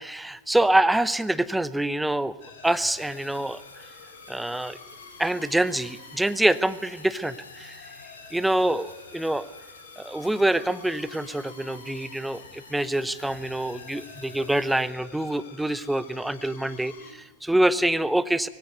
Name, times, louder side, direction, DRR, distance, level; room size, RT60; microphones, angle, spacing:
voice 1, 0.0-2.3 2.6-3.6 4.3-4.8 5.2-7.8 8.3-9.5 10.0-18.5, right 1 dB, 5° right, 15 dB, 0.8 m, -25 dB
sound 1, 2.4-17.1, left 5 dB, 55° left, 3.2 m, -48 dB
sound 2, 2.6-14.9, left 1 dB, 85° left, 5.3 m, -51 dB
19.0 x 16.0 x 9.2 m, 1.1 s
figure-of-eight pair, 90°, 0 cm